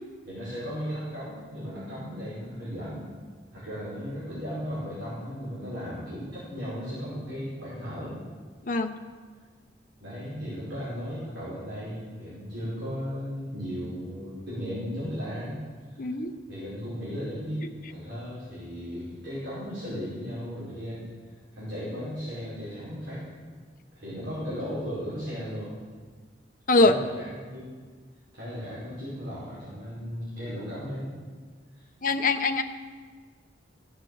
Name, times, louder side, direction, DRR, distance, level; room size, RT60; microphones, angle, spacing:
voice 1, 0.2-3.0 3.5-8.1 10.0-15.6 15.9-16.1 16.5-21.0 21.5-23.3 23.9-25.7 26.8-27.7 28.3-31.1 31.7-31.8, equal, 80° right, -10 dB, 5.2 m, -36 dB
voice 2, 8.6-9.0 16.0-16.3 26.7-26.9 32.0-32.6, left 3 dB, 45° left, 6 dB, 0.8 m, -22 dB
16.5 x 6.7 x 7.9 m, 1.5 s
head